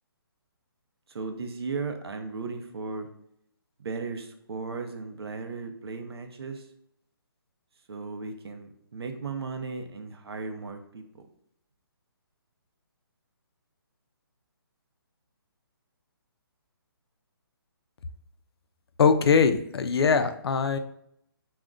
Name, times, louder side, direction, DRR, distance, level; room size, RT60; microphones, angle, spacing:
voice 1, 1.1-3.1 3.8-6.7 7.9-11.3, right 4 dB, 80° right, 6 dB, 0.6 m, -36 dB
voice 2, 19.0-20.8, left 5 dB, 80° left, 9 dB, 0.4 m, -22 dB
2.4 x 2.1 x 3.6 m, 0.71 s
hypercardioid pair, 175°, 13 cm